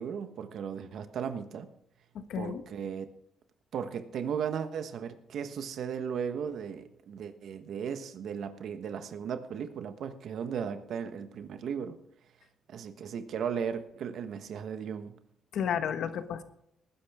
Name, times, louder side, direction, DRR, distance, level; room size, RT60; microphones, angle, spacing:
voice 1, 0.0-1.7 2.4-3.1 3.7-12.0 12.7-15.1, right 7 dB, 70° right, 9 dB, 1.2 m, -36 dB
voice 2, 2.1-2.6 15.5-16.4, left 8 dB, 70° left, 10 dB, 1.3 m, -32 dB
19.0 x 10.0 x 3.6 m, 0.73 s
cardioid pair, 90°, 0 cm